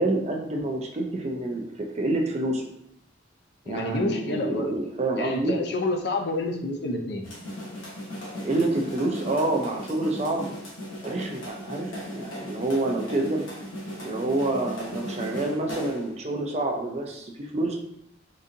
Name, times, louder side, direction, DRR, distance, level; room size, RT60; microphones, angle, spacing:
voice 1, 0.0-2.6 3.7-5.6 8.4-10.5 11.0-13.4 14.0-17.8, right 2 dB, 35° right, 1 dB, 0.4 m, -27 dB
voice 2, 3.7-4.7 5.2-7.3, left 2 dB, 55° left, 3 dB, 0.5 m, -28 dB
sound 1, 7.2-16.1, equal, 85° left, 1.1 m, -37 dB
3.8 x 2.6 x 2.6 m, 0.77 s
head